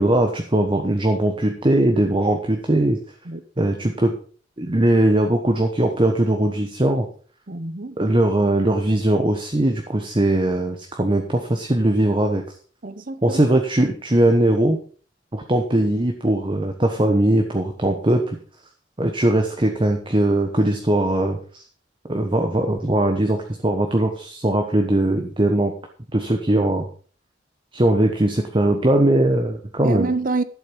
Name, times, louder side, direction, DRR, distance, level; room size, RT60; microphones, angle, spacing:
voice 1, 0.0-3.0 3.6-4.1 4.6-7.1 8.0-12.4 13.2-14.8 15.3-18.4 19.0-21.6 22.1-25.7 26.1-26.8 27.7-30.1, right 1 dB, 25° right, 1.2 m, -20 dB
voice 2, 7.5-8.0 12.8-13.4 29.8-30.4, right 3 dB, 45° right, 0.9 m, -26 dB
12.0 x 7.7 x 5.4 m
head